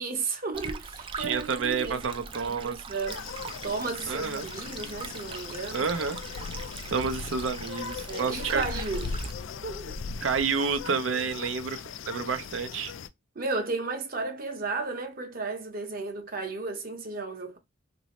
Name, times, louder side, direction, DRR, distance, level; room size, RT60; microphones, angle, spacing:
voice 1, 0.0-3.2 3.6-5.9 8.1-9.2 9.6-10.0 13.3-17.6, right 3 dB, 45° right, 0.8 m, -34 dB
Stream, 0.5-9.3, right 5 dB, 25° right, 0.3 m, -41 dB
voice 2, 1.2-2.8 4.1-4.5 5.7-6.2 6.9-8.6 10.2-12.9, right 5 dB, 75° right, 0.6 m, -29 dB
sound 1, 3.1-13.1, left 5 dB, 70° left, 0.4 m, -39 dB
3.1 x 2.7 x 2.9 m
head